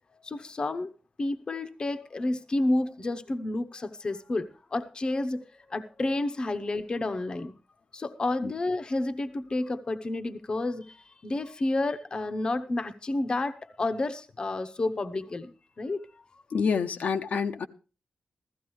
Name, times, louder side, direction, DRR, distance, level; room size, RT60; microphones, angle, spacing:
voice 1, 0.1-0.9 1.2-7.5 7.9-16.4, left 2 dB, 35° left, 0.9 m, -30 dB
voice 2, 16.5-17.7, left 5 dB, 75° left, 0.9 m, -27 dB
15.5 x 14.5 x 3.2 m
wide cardioid pair, 155°, 3 cm